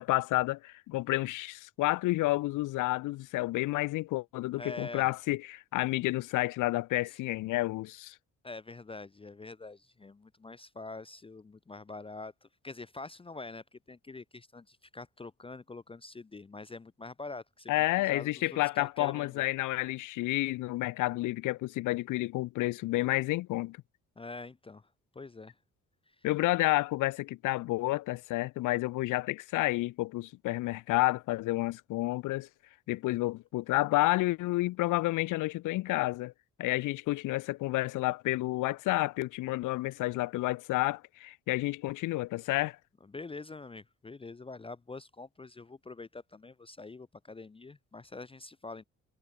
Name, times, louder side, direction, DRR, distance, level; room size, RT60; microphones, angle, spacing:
voice 1, 0.0-8.1 17.7-23.8 26.2-32.5 32.9-36.3 36.6-42.8, left 18 dB, 85° left, 0.7 m, -30 dB
voice 2, 4.6-5.1 7.1-7.2 8.4-17.7 18.0-18.5 18.7-19.4 24.2-24.9 25.1-25.5 26.1-26.3 43.0-48.8, left 3 dB, 20° left, 0.6 m, -45 dB
cardioid pair, 90°, 30 cm